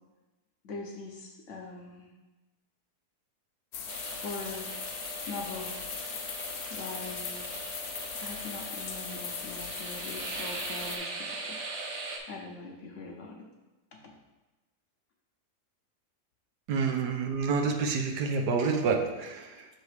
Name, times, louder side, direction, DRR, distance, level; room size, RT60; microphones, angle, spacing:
voice 1, 0.6-2.1 4.1-4.7 5.3-5.7 6.7-7.5 8.2-11.6 12.3-13.4 13.9-14.2, left 3 dB, 60° left, 1 dB, 0.9 m, -42 dB
sound 1, 3.7-11.0, left 6 dB, 75° left, 1.2 m, -39 dB
sound 2, 3.9-12.2, right 3 dB, 60° right, 1.2 m, -40 dB
voice 2, 16.7-19.7, right 5 dB, 85° right, 3 dB, 1.3 m, -28 dB
6.7 x 3.4 x 4.8 m, 1.1 s
omnidirectional pair, 1.7 m